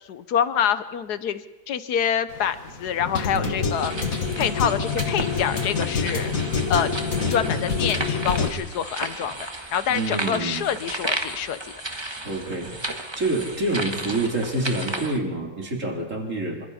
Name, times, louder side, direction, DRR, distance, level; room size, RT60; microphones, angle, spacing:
voice 1, 0.1-3.9 4.4-6.3 6.7-6.9 7.3-9.5 9.7-11.7, left 8 dB, 85° left, 13 dB, 1.5 m, -26 dB
sound 1, 2.3-8.5, left 4 dB, 60° left, 2.2 m, -26 dB
sound 2, 3.7-15.2, right 2 dB, 15° right, 1.5 m, -34 dB
voice 2, 9.9-10.6 12.2-12.8 13.2-16.7, right 2 dB, 50° right, 0 dB, 4.1 m, -27 dB
28.0 x 25.0 x 4.3 m, 1.1 s
omnidirectional pair, 1.7 m